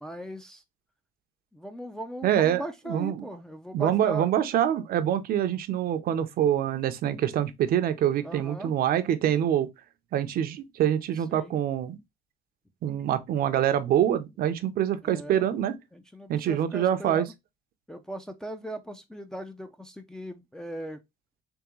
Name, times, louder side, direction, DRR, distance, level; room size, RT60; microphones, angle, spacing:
voice 1, 0.0-0.6 1.5-4.3 8.2-8.7 11.1-11.5 15.0-15.5 15.9-17.3 17.9-21.0, right 1 dB, 5° left, 0.5 m, -39 dB
voice 2, 2.2-3.2 3.7-9.7 10.1-12.0 12.8-15.8 16.3-17.3, right 10 dB, 60° right, 0.6 m, -25 dB
3.5 x 3.3 x 3.0 m
cardioid pair, 110°, 17 cm